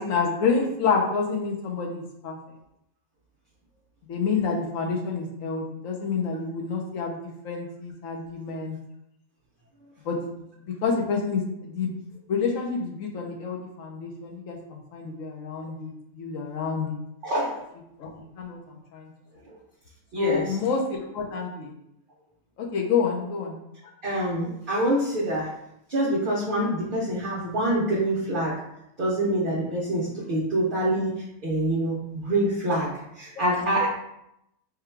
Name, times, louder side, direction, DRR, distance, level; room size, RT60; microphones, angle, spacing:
voice 1, 0.0-2.4 4.1-8.8 10.0-10.2 10.6-11.9 12.3-17.0 18.0-18.1 18.4-18.6 18.9-19.1 20.1-21.7 22.6-23.6 33.4-33.5 33.8-33.9, left 5 dB, 70° left, 0 dB, 1.0 m, -28 dB
voice 2, 17.2-17.6 20.1-20.6 24.0-25.5 25.9-28.6 29.0-33.9, right 1 dB, 50° right, -6 dB, 0.6 m, -26 dB
3.6 x 2.2 x 4.4 m, 0.83 s
omnidirectional pair, 1.5 m